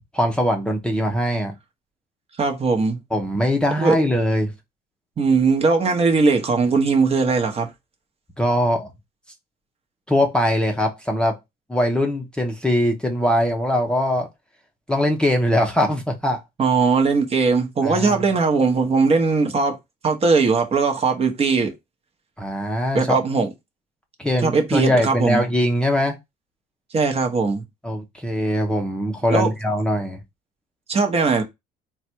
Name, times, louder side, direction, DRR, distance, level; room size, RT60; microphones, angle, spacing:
voice 1, 0.1-1.5 3.1-4.5 8.4-8.9 10.1-11.4 11.7-14.3 14.9-16.4 17.8-18.2 22.4-23.2 24.2-26.2 27.8-30.2, equal, 5° left, 0.7 m, -21 dB
voice 2, 2.4-3.0 3.8-4.0 5.2-7.7 16.6-19.8 20.0-21.7 22.9-23.5 24.4-25.4 26.9-27.6 29.3-29.5 30.9-31.4, right 4 dB, 35° right, 1.0 m, -19 dB
3.9 x 2.3 x 4.4 m
cardioid pair, 120°, 18 cm